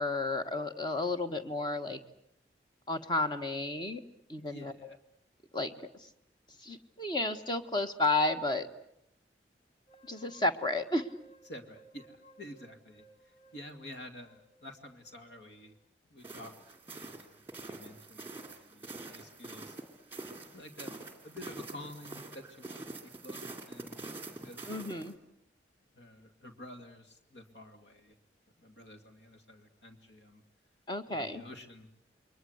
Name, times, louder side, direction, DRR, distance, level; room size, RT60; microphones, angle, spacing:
voice 1, 0.0-2.0 2.9-4.0 4.3-4.7 5.5-5.7 6.0-6.1 6.6-8.7 10.1-11.1 24.7-25.1 30.9-31.4, left 2 dB, 25° left, 7 dB, 1.4 m, -32 dB
voice 2, 4.4-5.0 11.5-15.7 16.0-17.3 17.7-19.8 20.5-24.0 24.4-25.0 25.9-28.2 28.6-30.4 31.1-31.9, left 1 dB, 80° left, 6 dB, 2.4 m, -50 dB
sound 1, 9.9-15.9, right 3 dB, 60° left, 2.4 m, -60 dB
sound 2, 16.2-25.1, right 2 dB, 15° right, 2.7 m, -45 dB
29.0 x 22.5 x 8.0 m, 0.74 s
head